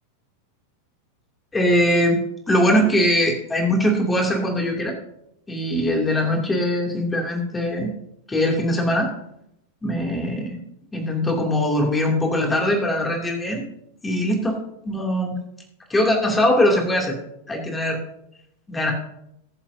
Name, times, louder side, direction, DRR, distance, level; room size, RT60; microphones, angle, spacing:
voice 1, 1.5-5.0 5.5-7.9 8.3-9.1 9.8-10.6 10.9-13.6 14.0-15.3 15.9-17.1 17.5-18.0 18.7-18.9, left 1 dB, 10° left, 1 dB, 2.8 m, -21 dB
20.0 x 7.4 x 2.8 m, 0.78 s
figure-of-eight pair, 90°, 0 cm